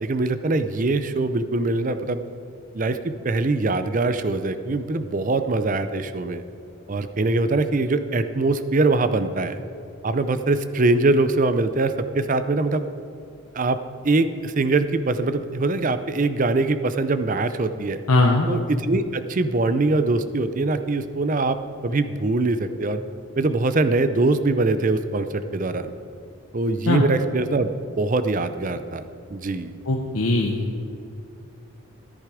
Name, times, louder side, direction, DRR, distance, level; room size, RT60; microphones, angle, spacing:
voice 1, 0.0-2.3 2.7-6.4 6.9-9.6 10.0-12.8 13.5-13.8 14.0-18.0 18.4-21.6 21.8-23.0 23.4-25.9 26.5-27.7 28.0-29.0 29.3-29.8, right 2 dB, 35° right, 11 dB, 0.5 m, -23 dB
voice 2, 18.1-18.5 26.9-27.0 29.9-30.7, left 2 dB, 85° left, 0 dB, 0.9 m, -20 dB
14.0 x 10.0 x 4.9 m, 2.6 s
head